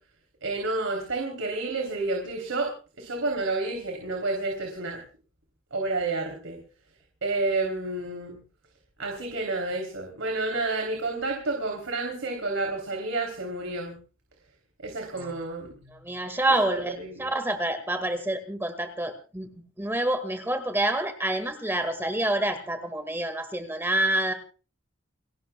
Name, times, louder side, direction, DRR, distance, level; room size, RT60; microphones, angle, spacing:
voice 1, 0.4-2.7 3.0-5.0 5.7-6.6 7.2-8.4 9.0-14.0 14.8-15.7 17.0-17.3, right 2 dB, 80° right, 2 dB, 3.5 m, -30 dB
voice 2, 15.9-19.5 19.8-24.3, right 1 dB, 10° right, 7 dB, 1.9 m, -27 dB
30.0 x 13.0 x 2.3 m, 0.37 s
head